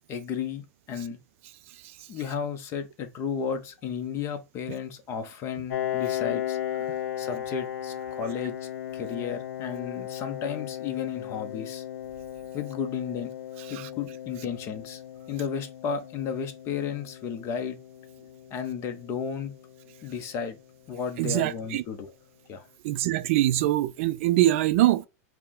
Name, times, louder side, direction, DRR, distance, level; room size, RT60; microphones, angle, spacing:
voice 1, 0.1-1.2 2.1-6.6 6.9-11.8 12.5-13.3 13.7-15.0 15.3-17.8 18.5-19.5 20.0-20.6 20.9-22.1 22.5-22.7, left 7 dB, 30° left, 0.8 m, -33 dB
voice 2, 1.7-2.1 13.7-13.9 21.2-21.8 22.8-25.0, right 14 dB, 55° right, 0.4 m, -24 dB
Piano, 5.7-21.1, left 11 dB, 85° left, 0.6 m, -36 dB
4.5 x 2.2 x 3.7 m
supercardioid pair, 150°, 8 cm